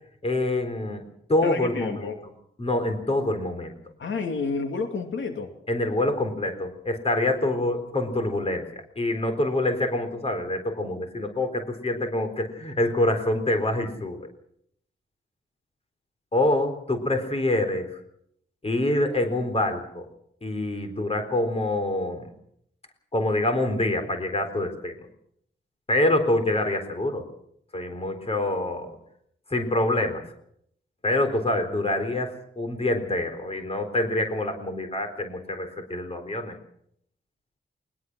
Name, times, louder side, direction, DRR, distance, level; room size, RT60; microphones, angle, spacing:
voice 1, 0.2-1.0 1.3-1.9 2.6-3.8 5.7-14.3 16.3-17.9 18.6-20.1 20.4-22.3 23.1-25.0 25.9-27.2 27.7-29.0 29.5-30.2 31.0-36.6, left 1 dB, 30° left, 6 dB, 3.9 m, -26 dB
voice 2, 1.4-2.2 4.0-5.5, left 4 dB, 75° left, 5 dB, 2.7 m, -30 dB
22.0 x 21.0 x 6.2 m, 0.69 s
wide cardioid pair, 165°, 20 cm